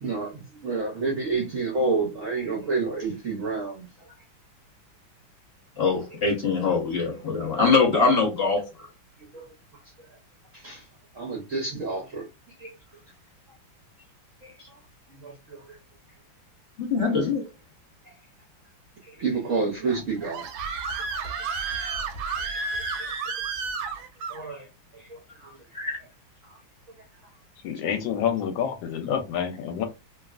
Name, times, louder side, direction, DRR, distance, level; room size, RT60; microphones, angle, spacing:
voice 1, 0.0-4.2 6.1-6.2 9.2-9.8 10.1-10.2 10.5-10.9 11.1-12.7 14.4-14.8 15.2-15.8 18.0-18.2 19.0-20.8 22.3-22.5 23.5-23.9 24.3-24.7 24.9-25.6 26.4-26.6, right 4 dB, 60° right, 0.8 m, -30 dB
voice 2, 5.8-8.6 16.8-17.5 25.7-26.0, left 4 dB, 35° left, 1.1 m, -23 dB
Screaming, 19.9-24.4, right 4 dB, 80° right, 1.3 m, -31 dB
voice 3, 27.6-29.8, left 8 dB, 75° left, 1.2 m, -28 dB
3.1 x 2.3 x 2.3 m
omnidirectional pair, 2.2 m